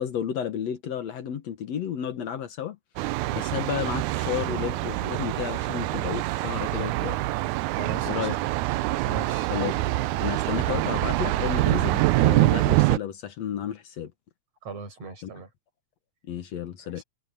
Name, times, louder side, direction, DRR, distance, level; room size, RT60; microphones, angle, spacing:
voice 1, 0.0-2.8 3.3-7.2 8.1-8.4 9.5-9.8 10.2-14.1 15.2-15.3 16.3-17.0, left 9 dB, 65° left, 2.4 m, -32 dB
Thunder, 3.0-13.0, right 18 dB, 85° right, 2.0 m, -25 dB
voice 2, 7.7-8.3 9.1-9.5 14.6-15.5 17.0-17.1, right 3 dB, 55° right, 7.4 m, -37 dB
omnidirectional pair, 3.4 m